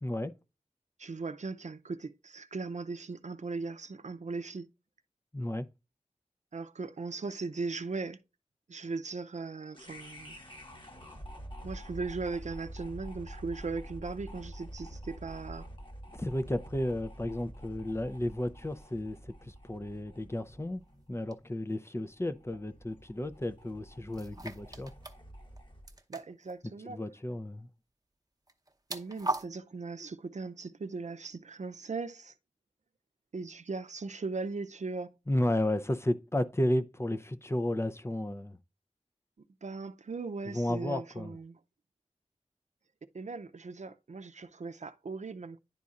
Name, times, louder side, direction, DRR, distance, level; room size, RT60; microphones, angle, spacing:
voice 1, 0.0-0.3 5.3-5.7 16.1-20.8 21.1-24.9 26.8-27.7 35.3-38.6 40.5-41.4, left 1 dB, 20° left, 0.5 m, -33 dB
voice 2, 1.0-4.7 6.5-8.2 8.7-10.4 11.6-15.7 26.1-27.0 28.9-32.3 33.3-35.1 39.6-41.6 43.1-45.6, right 4 dB, 75° right, 0.5 m, -38 dB
sound 1, 9.7-26.0, equal, 45° left, 1.4 m, -48 dB
sound 2, 21.3-21.4 24.1-25.2 25.5-25.6 25.9-26.6 28.5-29.5, right 2 dB, 30° right, 0.9 m, -37 dB
10.5 x 4.1 x 2.4 m
wide cardioid pair, 55°, 12 cm